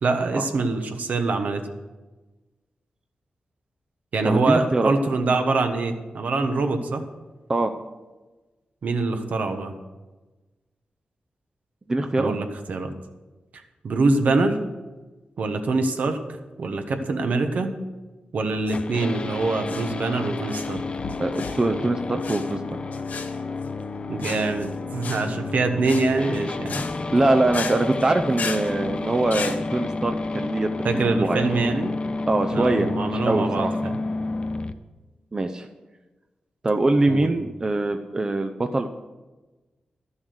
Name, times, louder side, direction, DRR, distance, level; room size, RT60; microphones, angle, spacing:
voice 1, 0.0-1.6 4.1-7.0 8.8-9.7 12.2-12.9 13.8-14.6 15.4-16.2 16.6-17.8 18.3-20.8 24.1-26.8 28.6-28.9 29.5-29.6 30.8-31.9 32.5-34.0 37.1-37.3, right 3 dB, 70° right, 6 dB, 1.2 m, -24 dB
voice 2, 4.2-4.9 7.5-7.7 11.9-12.4 21.2-22.6 27.1-31.5 32.3-33.7 35.3-35.7 36.6-38.9, right 2 dB, 25° right, 6 dB, 0.6 m, -23 dB
sound 1, 18.5-29.6, left 4 dB, 70° left, 0.9 m, -36 dB
sound 2, 18.7-34.7, left 3 dB, 35° left, 0.6 m, -30 dB
12.0 x 7.2 x 6.4 m, 1.2 s
wide cardioid pair, 140°, 3 cm